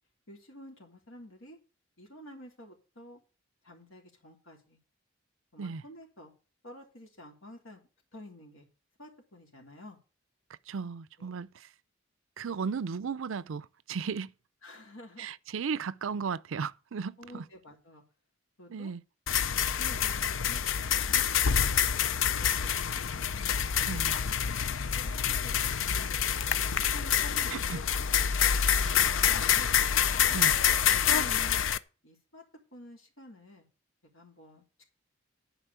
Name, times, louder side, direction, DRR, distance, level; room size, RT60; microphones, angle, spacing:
voice 1, 0.3-1.6 2.0-3.2 3.7-4.8 5.5-6.3 6.6-7.8 8.1-8.7 9.0-10.0 11.3-11.5 12.6-12.7 14.6-15.3 17.2-18.0 18.6-18.9 19.8-20.6 20.9-21.6 22.4-22.7 23.0-23.7 24.0-24.2 25.0-26.2 26.5-27.8 28.9-29.7 30.7-31.7 32.0-32.4 32.7-33.7 34.1-34.6, equal, 80° left, 3.4 m, -50 dB
voice 2, 10.7-11.5 12.4-14.3 15.2-17.4 18.7-19.0 23.9-24.2 27.5-27.8 30.3-30.6, right 5 dB, 70° right, 0.5 m, -35 dB
sound 1, 19.3-31.8, left 8 dB, 65° left, 0.5 m, -27 dB
11.0 x 5.1 x 8.0 m
head